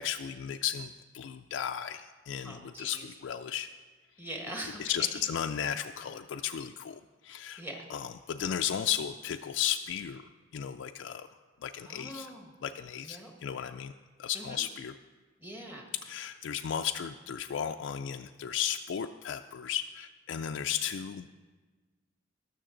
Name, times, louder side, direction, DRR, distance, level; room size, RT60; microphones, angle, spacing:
voice 1, 0.0-3.7 4.8-7.6 7.9-10.2 10.5-11.3 11.6-12.3 12.6-13.9 14.2-15.0 16.0-21.3, left 9 dB, 70° left, 6 dB, 0.3 m, -35 dB
voice 2, 2.4-3.1 4.2-5.1 7.6-7.9 11.8-12.5 13.0-13.3 14.3-14.6 15.4-15.9, right 1 dB, 10° right, 1 dB, 1.3 m, -42 dB
18.5 x 6.4 x 3.8 m, 1.3 s
head